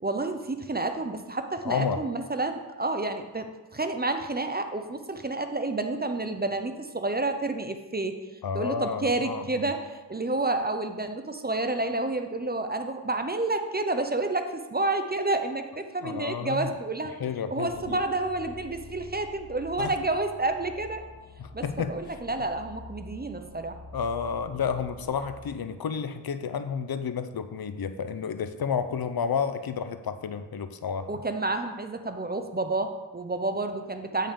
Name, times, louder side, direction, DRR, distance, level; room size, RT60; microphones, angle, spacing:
voice 1, 0.0-8.2 8.5-17.1 17.5-21.0 21.5-23.8 31.1-34.3, right 2 dB, 25° right, 7 dB, 0.6 m, -29 dB
voice 2, 1.6-2.1 8.4-9.7 16.0-16.7 17.2-18.0 19.8-19.9 21.4-21.9 23.9-31.1, left 6 dB, 60° left, 10 dB, 0.6 m, -31 dB
sound 1, 17.6-25.5, left 1 dB, 40° left, 1.1 m, -46 dB
8.5 x 5.5 x 3.7 m, 1.2 s
wide cardioid pair, 60°, 41 cm